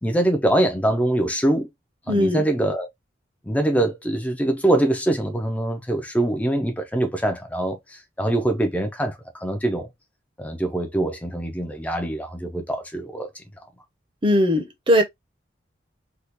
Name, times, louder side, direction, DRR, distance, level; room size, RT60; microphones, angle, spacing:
voice 1, 0.0-1.7 2.1-2.9 3.4-9.9 10.4-13.4, right 1 dB, 5° left, 0.5 m, -23 dB
voice 2, 2.1-2.4 14.2-15.0, equal, 25° right, 0.7 m, -19 dB
3.5 x 2.4 x 2.8 m
head